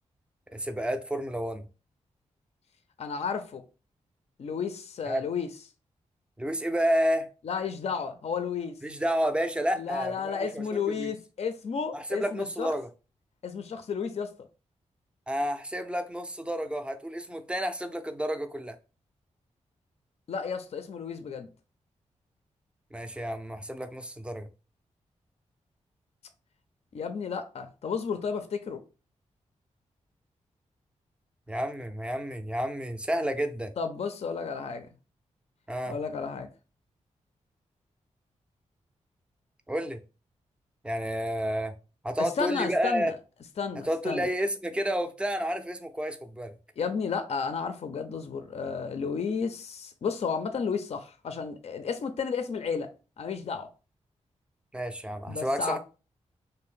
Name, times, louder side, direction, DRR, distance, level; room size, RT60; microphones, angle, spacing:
voice 1, 0.5-1.7 5.1-5.2 6.4-7.3 8.8-11.1 11.9-12.9 15.3-18.8 22.9-24.5 31.5-33.7 35.7-36.0 39.7-40.0 40.8-41.7 42.0-43.1 43.9-46.6 54.7-55.8, equal, 10° right, 0.4 m, -30 dB
voice 2, 3.0-3.6 4.4-5.5 7.4-8.8 9.8-12.7 13.4-14.3 20.3-21.5 26.9-28.8 33.8-34.9 35.9-36.5 42.2-43.1 43.6-44.3 46.8-52.9 53.2-53.7 55.3-55.8, left 6 dB, 55° left, 0.4 m, -32 dB
2.6 x 2.0 x 3.5 m
cardioid pair, 55°, 13 cm